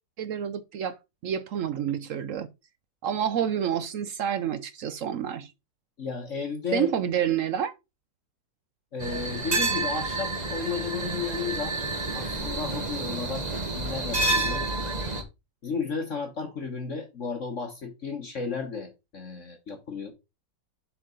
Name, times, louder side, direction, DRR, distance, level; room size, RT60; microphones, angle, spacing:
voice 1, 0.2-1.0 1.2-2.5 3.0-5.5 6.7-7.7, right 9 dB, 70° right, 0.7 m, -28 dB
voice 2, 6.0-6.9 8.9-11.8 12.1-14.7 15.6-20.1, left 5 dB, 45° left, 1.4 m, -33 dB
sound 1, 9.0-15.2, right 2 dB, 25° right, 1.2 m, -29 dB
7.4 x 4.7 x 3.8 m
omnidirectional pair, 1.9 m